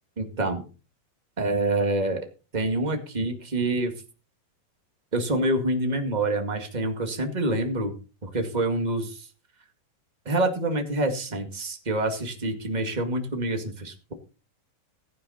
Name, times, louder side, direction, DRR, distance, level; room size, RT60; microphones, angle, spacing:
voice 1, 0.2-0.6 1.4-2.2 2.5-3.9 5.1-7.9 8.2-9.3 10.2-14.1, right 2 dB, 20° right, 5 dB, 1.2 m, -26 dB
17.0 x 9.3 x 4.2 m, 0.35 s
omnidirectional pair, 4.2 m